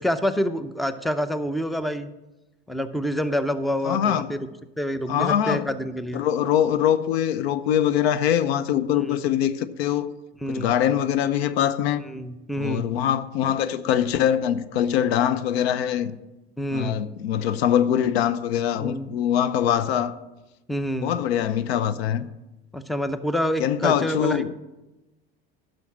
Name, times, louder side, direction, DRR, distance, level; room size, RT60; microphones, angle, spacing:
voice 1, 0.0-2.1 2.7-4.4 4.8-6.2 9.0-9.2 10.4-10.7 12.0-12.9 16.6-17.0 18.8-19.1 20.7-21.2 22.7-24.5, equal, ahead, 0.6 m, -27 dB
voice 2, 3.8-4.3 5.1-5.7 6.1-10.1 10.5-12.0 12.6-16.1 16.7-20.1 21.0-22.3 23.6-24.5, left 10 dB, 85° left, 0.8 m, -23 dB
11.0 x 6.5 x 7.3 m
supercardioid pair, 95°, 31 cm